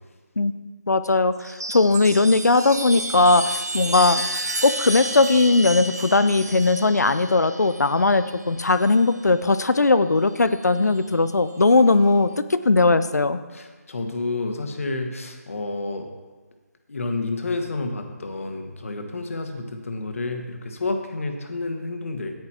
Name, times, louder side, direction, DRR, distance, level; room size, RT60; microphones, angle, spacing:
voice 1, 0.9-1.3 1.7-4.2 4.6-13.4, left 3 dB, 80° left, 12 dB, 0.6 m, -19 dB
Chime, 1.3-9.2 10.4-11.0, right 1 dB, 75° right, 1.2 m, -32 dB
voice 2, 13.5-16.0 16.9-22.3, left 3 dB, 55° left, 4 dB, 1.5 m, -30 dB
9.5 x 9.3 x 4.4 m, 1.3 s
figure-of-eight pair, 160°, 9 cm